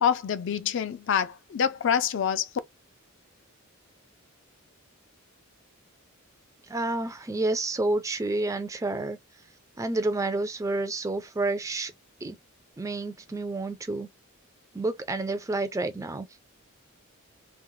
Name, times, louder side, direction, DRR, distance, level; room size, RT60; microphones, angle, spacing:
voice 1, 0.0-2.5, left 8 dB, 60° left, 0.4 m, -26 dB
voice 2, 6.7-9.2 9.8-11.9 12.2-12.4 12.8-14.1 14.7-16.3, right 2 dB, 15° right, 0.3 m, -29 dB
3.1 x 2.0 x 2.6 m
head